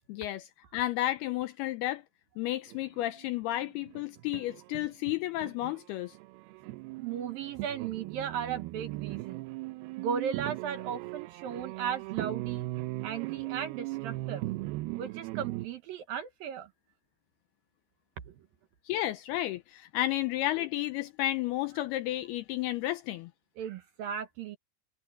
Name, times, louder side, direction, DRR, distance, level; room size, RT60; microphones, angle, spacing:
voice 1, 0.1-2.0 2.4-6.2 18.9-23.3, left 15 dB, 80° left, 2.4 m, -32 dB
sound 1, 2.7-5.8 6.1-15.7, right 20 dB, 85° right, 2.2 m, -38 dB
voice 2, 7.0-9.4 10.0-12.7 13.0-14.4 15.0-16.7 23.6-24.6, right 8 dB, 70° right, 2.5 m, -36 dB
omnidirectional pair, 5.2 m